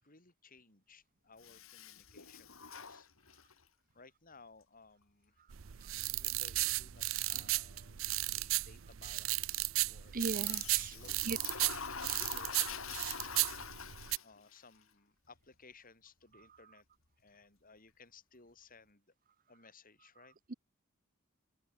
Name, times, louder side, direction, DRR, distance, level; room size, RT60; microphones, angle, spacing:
voice 1, 0.0-3.7 3.9-5.4 5.8-12.8 14.2-16.8 17.2-19.1 19.5-20.4, left 4 dB, 45° left, 6.7 m, -61 dB
Toilet flush, 1.4-3.6 10.4-14.5, left 6 dB, 90° left, 4.6 m, -45 dB
sound 1, 5.5-14.2, right 17 dB, 75° right, 0.6 m, -35 dB
voice 2, 10.1-11.0 11.2-11.4, right 3 dB, 45° right, 0.8 m, -37 dB
open air
head